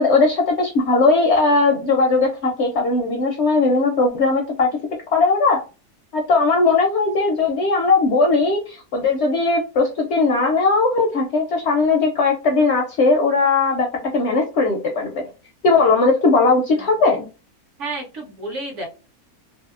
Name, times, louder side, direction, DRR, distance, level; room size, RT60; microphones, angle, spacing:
voice 1, 0.0-4.7 5.1-5.6 6.1-15.2 15.6-17.3, left 3 dB, 70° left, 1 dB, 0.6 m, -18 dB
voice 2, 17.8-18.9, right 2 dB, 60° right, 2 dB, 0.9 m, -31 dB
2.7 x 2.7 x 2.4 m, 0.32 s
omnidirectional pair, 1.6 m